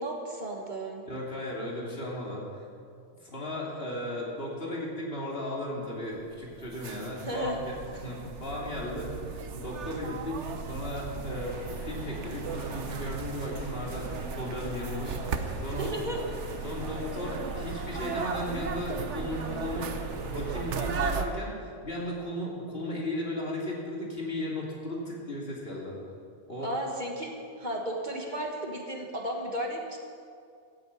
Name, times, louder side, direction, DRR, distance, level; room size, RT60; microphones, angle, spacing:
voice 1, 0.0-1.0 7.3-7.6 15.7-16.2 26.6-30.0, right 1 dB, 40° right, 0 dB, 1.7 m, -34 dB
voice 2, 1.1-2.7 3.2-7.7 8.0-10.4 10.7-15.9 16.6-21.6 21.8-26.0 26.5-26.7, left 1 dB, 55° left, -4 dB, 3.2 m, -36 dB
sound 1, 6.2-21.3, right 5 dB, 85° right, 1.2 m, -36 dB
sound 2, 11.3-20.9, left 1 dB, 20° left, 1.4 m, -47 dB
14.5 x 8.9 x 8.3 m, 2.3 s
omnidirectional pair, 1.2 m